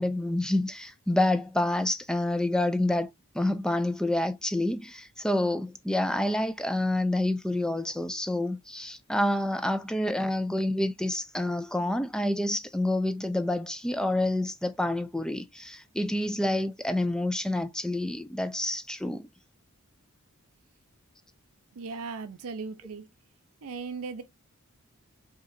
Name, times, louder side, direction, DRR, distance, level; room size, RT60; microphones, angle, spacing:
voice 1, 0.0-3.1 3.3-19.3, left 1 dB, 5° left, 0.3 m, -28 dB
voice 2, 21.7-23.1 23.6-24.2, right 4 dB, 80° right, 0.5 m, -37 dB
5.0 x 2.9 x 2.5 m
head